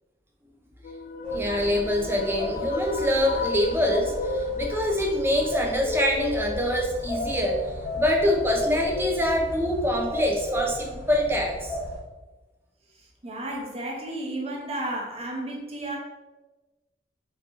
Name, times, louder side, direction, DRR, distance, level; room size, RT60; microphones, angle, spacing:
sound 1, 0.8-11.8, left 4 dB, 50° left, 0.3 m, -36 dB
sound 2, 1.2-12.0, right 1 dB, 5° left, 1.3 m, -35 dB
voice 1, 1.3-7.7 7.9-11.8, left 1 dB, 15° right, 1 dB, 0.6 m, -25 dB
voice 2, 13.2-16.0, right 1 dB, 35° right, -1 dB, 0.9 m, -32 dB
5.3 x 2.9 x 3.1 m, 1.2 s
head